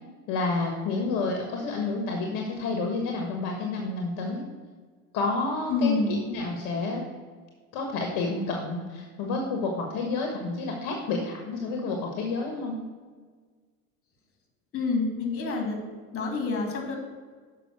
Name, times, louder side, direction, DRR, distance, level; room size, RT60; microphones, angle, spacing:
voice 1, 0.3-4.4 5.1-7.0 7.7-12.8, left 3 dB, 55° left, 2 dB, 1.6 m, -29 dB
voice 2, 5.7-6.2 14.7-15.8 16.1-17.0, left 3 dB, 35° left, 2 dB, 2.5 m, -27 dB
7.0 x 5.6 x 6.2 m, 1.5 s
hypercardioid pair, 100°, 40 cm